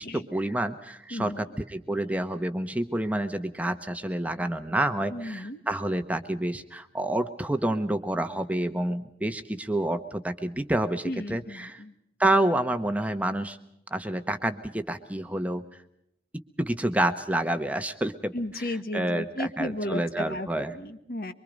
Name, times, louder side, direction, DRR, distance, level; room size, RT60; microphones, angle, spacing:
voice 1, 0.0-11.8 12.2-13.6 13.9-15.6 16.6-18.3 18.7-20.7, right 1 dB, 10° right, 8 dB, 1.0 m, -28 dB
voice 2, 1.1-1.5 5.1-5.6 11.0-11.9 18.3-21.3, left 1 dB, 55° left, 10 dB, 1.4 m, -34 dB
24.5 x 24.0 x 5.2 m, 0.81 s
head